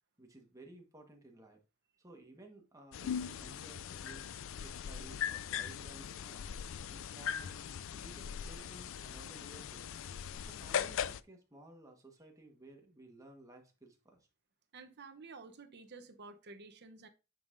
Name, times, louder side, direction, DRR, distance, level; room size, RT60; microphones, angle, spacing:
voice 1, 0.2-1.6 2.0-4.3 4.6-6.5 6.9-7.6 7.9-9.8 10.5-14.2, right 2 dB, 15° right, 1.4 m, -56 dB
sound 1, 2.9-11.2, left 8 dB, 60° left, 0.4 m, -40 dB
voice 2, 14.7-17.1, right 4 dB, 50° right, 0.9 m, -51 dB
9.3 x 5.5 x 2.6 m
head